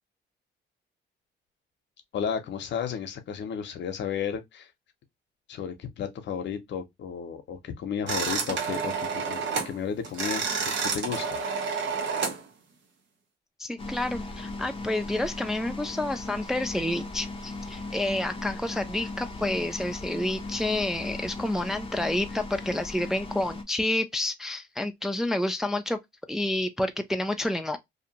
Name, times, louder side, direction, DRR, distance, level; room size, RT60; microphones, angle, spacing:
voice 1, 2.1-4.7 5.5-10.4 10.8-11.4, left 7 dB, 65° left, 0.7 m, -33 dB
sound 1, 8.1-9.7 10.0-12.4, right 5 dB, 65° right, 1.1 m, -29 dB
voice 2, 13.6-26.0 26.3-27.8, left 1 dB, ahead, 0.3 m, -29 dB
sound 2, 13.8-23.6, left 2 dB, 25° left, 0.7 m, -38 dB
2.6 x 2.4 x 2.8 m
cardioid pair, 90°, 20 cm